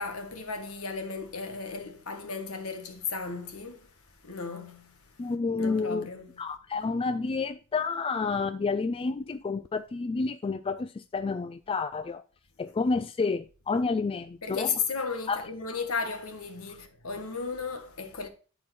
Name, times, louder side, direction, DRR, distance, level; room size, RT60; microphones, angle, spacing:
voice 1, 0.0-3.9 4.2-5.0 5.6-6.4 14.4-18.3, left 5 dB, 70° left, 1.4 m, -35 dB
voice 2, 5.2-6.1 6.4-12.2 12.6-14.7 15.3-15.5, left 4 dB, 25° left, 0.3 m, -30 dB
10.5 x 4.5 x 4.5 m
head